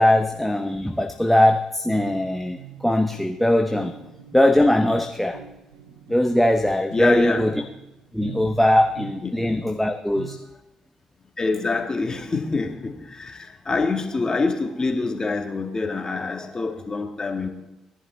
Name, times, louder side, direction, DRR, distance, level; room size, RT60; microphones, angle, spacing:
voice 1, 0.0-3.9 4.3-5.4 6.1-7.5 8.1-10.4, left 1 dB, 5° left, 5 dB, 1.0 m, -20 dB
sound 1, 1.9-10.4, right 10 dB, 85° right, 0.7 m, -44 dB
voice 2, 6.9-7.4 9.2-9.4 11.4-17.5, left 3 dB, 30° left, 4 dB, 2.1 m, -25 dB
17.5 x 11.0 x 4.1 m, 0.96 s
hypercardioid pair, 45°, 2 cm